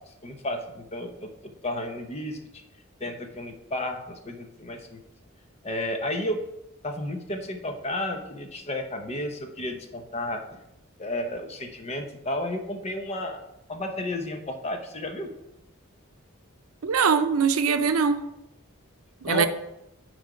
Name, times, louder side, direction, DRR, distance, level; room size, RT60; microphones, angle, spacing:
voice 1, 0.2-2.4 3.0-5.0 5.6-6.4 6.8-10.4 11.0-13.4 13.7-15.3 19.2-19.5, left 1 dB, 30° left, 5 dB, 0.8 m, -32 dB
voice 2, 16.8-18.2 19.2-19.5, right 6 dB, 85° right, 9 dB, 0.6 m, -22 dB
9.6 x 3.4 x 5.0 m, 0.87 s
head